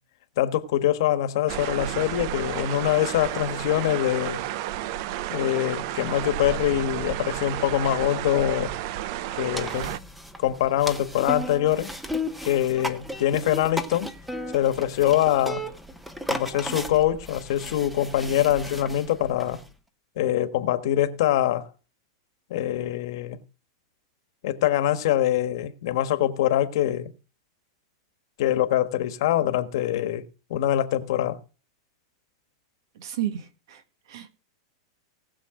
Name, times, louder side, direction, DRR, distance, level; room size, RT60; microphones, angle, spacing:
voice 1, 0.4-4.4 5.3-8.7 9.4-10.0 10.4-11.9 12.4-14.1 14.5-15.6 16.3-19.6 20.2-21.7 22.5-23.4 24.4-27.1 28.4-30.2 30.5-31.4, left 12 dB, 60° left, 1.4 m, -24 dB
sound 1, 1.5-10.0, right 13 dB, 45° right, 0.6 m, -32 dB
sound 2, 9.5-19.7, equal, ahead, 0.9 m, -35 dB
voice 2, 33.0-33.8 34.1-34.3, right 11 dB, 65° right, 1.9 m, -32 dB
19.0 x 6.9 x 3.8 m
supercardioid pair, 155°, 3 cm